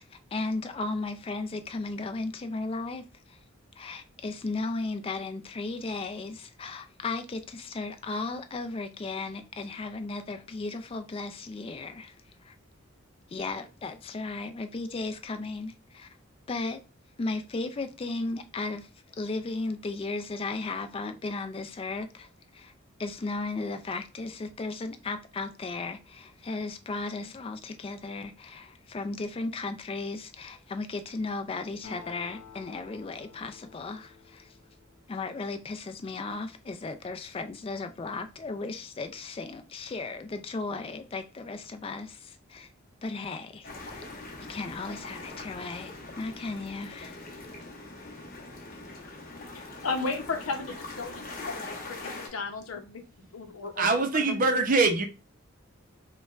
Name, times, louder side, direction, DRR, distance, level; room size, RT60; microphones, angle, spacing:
voice 1, 0.0-3.4 3.8-12.2 12.4-12.5 13.3-16.1 16.5-16.8 17.2-18.9 19.2-22.7 23.0-34.6 35.1-42.7 43.0-44.2 44.5-47.2, left 3 dB, 25° left, 0.3 m, -35 dB
Acoustic guitar, 31.8-35.6, left 6 dB, 65° left, 1.2 m, -51 dB
sound 1, 43.6-52.3, left 2 dB, 45° left, 0.9 m, -42 dB
voice 2, 49.5-53.9 54.3-54.4, left 4 dB, 90° left, 0.7 m, -35 dB
voice 3, 53.8-55.1, right 3 dB, 40° right, 0.6 m, -23 dB
5.2 x 2.2 x 2.4 m
head